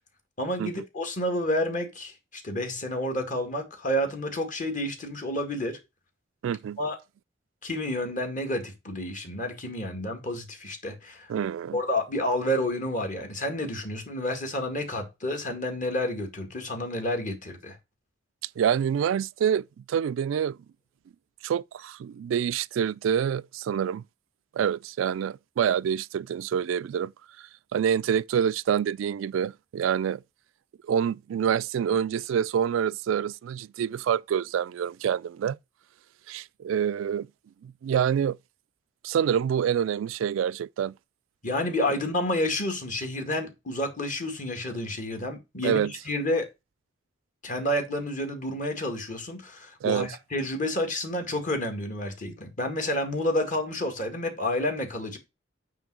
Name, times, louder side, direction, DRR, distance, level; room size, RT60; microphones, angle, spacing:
voice 1, 0.4-5.8 6.8-7.0 7.6-11.3 11.7-17.8 41.4-46.5 47.4-55.2, left 1 dB, 45° left, 1.9 m, -30 dB
voice 2, 6.4-6.8 11.3-11.8 18.6-20.6 21.4-24.0 24.5-27.1 27.7-30.2 30.9-35.6 36.3-37.3 37.6-38.4 39.0-40.9 45.6-45.9 49.8-50.1, right 8 dB, 90° right, 0.3 m, -26 dB
8.8 x 3.2 x 6.1 m
head